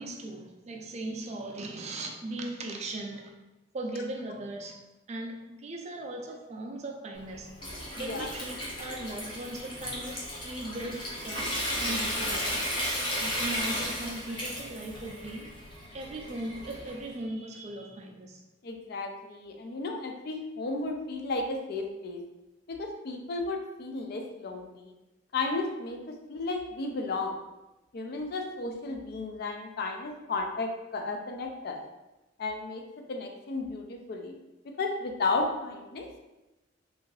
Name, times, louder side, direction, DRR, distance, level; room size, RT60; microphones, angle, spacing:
voice 1, 0.0-3.4 3.7-4.8 5.1-7.5 8.0-12.7 13.2-15.6 15.9-18.4, right 1 dB, 35° right, 0.4 m, -38 dB
Water tap faucet / Sink (filling or washing) / Trickle dribble, 7.2-17.1, equal, 25° left, 0.7 m, -34 dB
voice 2, 8.0-8.3 18.6-22.2 22.7-24.9 25.3-27.3 27.9-31.8 32.4-32.8 33.1-34.4 34.6-36.2, left 3 dB, 55° left, 0.4 m, -33 dB
2.6 x 2.4 x 3.1 m
head